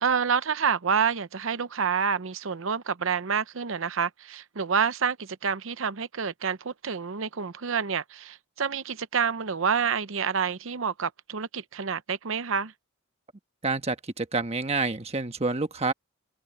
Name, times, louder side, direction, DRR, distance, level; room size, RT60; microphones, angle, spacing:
voice 1, 0.0-12.7, right 6 dB, 65° right, 0.7 m, -28 dB
voice 2, 13.6-15.9, right 3 dB, 30° right, 1.2 m, -28 dB
open air
head